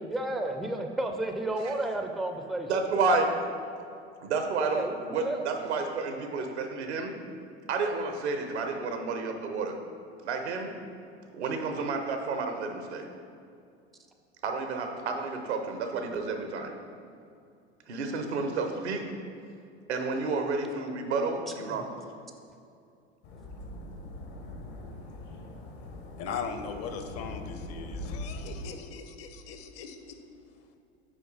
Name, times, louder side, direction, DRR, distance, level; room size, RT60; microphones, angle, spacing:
voice 1, 0.0-2.7 4.6-5.4 21.6-21.9, right 1 dB, ahead, 5 dB, 0.3 m, -32 dB
voice 2, 2.7-3.3 4.2-7.1 7.7-9.7 10.2-10.7 11.3-13.1 14.4-16.8 17.9-19.1 19.9-21.9, right 4 dB, 80° right, 5 dB, 0.8 m, -30 dB
sound 1, 23.2-28.7, left 1 dB, 70° left, 1.0 m, -41 dB
voice 3, 26.2-30.2, left 6 dB, 50° left, 7 dB, 0.7 m, -39 dB
6.1 x 4.5 x 3.9 m, 2.4 s
hypercardioid pair, 80°, 33 cm